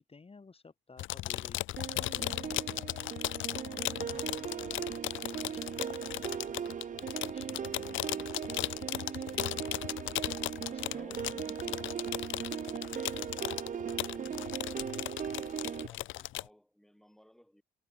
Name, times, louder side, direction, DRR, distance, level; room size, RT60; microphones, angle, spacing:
voice 1, 0.0-2.8 3.5-4.9 5.4-6.3 7.0-9.9 10.7-11.9, left 4 dB, 30° left, 7.6 m, -54 dB
sound 1, 1.0-16.5, left 15 dB, 80° left, 0.7 m, -37 dB
sound 2, 1.8-15.9, right 7 dB, 40° right, 0.8 m, -39 dB
voice 2, 10.9-11.4 12.5-14.9 15.8-17.6, equal, ahead, 7.0 m, -59 dB
cardioid pair, 90°, 20 cm